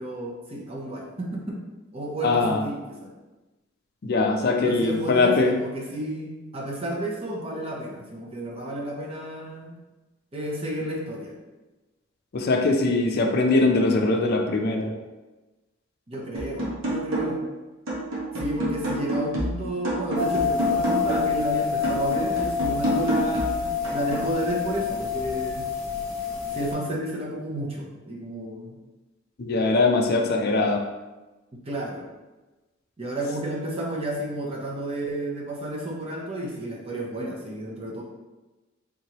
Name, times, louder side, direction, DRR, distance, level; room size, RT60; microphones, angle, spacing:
voice 1, 0.0-1.6 1.9-3.1 4.6-9.8 10.3-11.3 16.1-17.4 18.3-25.7 26.5-28.8 31.7-32.0 33.0-38.0, right 1 dB, 30° right, -3 dB, 0.7 m, -32 dB
voice 2, 2.2-2.6 4.0-5.5 12.3-14.9 29.4-30.8, left 3 dB, 50° left, 3 dB, 0.4 m, -21 dB
sound 1, 16.3-17.5 17.9-21.4 21.8-24.3, right 1 dB, 75° right, 1.1 m, -29 dB
sound 2, 20.1-26.7, left 6 dB, 15° left, 1.0 m, -27 dB
3.6 x 3.1 x 2.9 m, 1.1 s
head